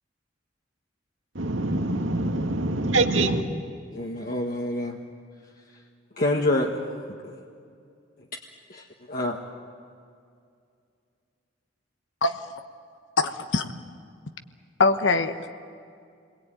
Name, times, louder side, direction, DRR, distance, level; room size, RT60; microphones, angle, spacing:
voice 1, 1.4-3.4, right 2 dB, 85° right, 5 dB, 2.0 m, -24 dB
voice 2, 3.9-5.0 6.2-6.8 8.7-9.4, left 1 dB, 50° left, 0 dB, 1.7 m, -27 dB
voice 3, 13.2-13.7 14.8-15.5, left 3 dB, 70° left, 8 dB, 1.2 m, -22 dB
29.0 x 22.0 x 9.2 m, 2.3 s
head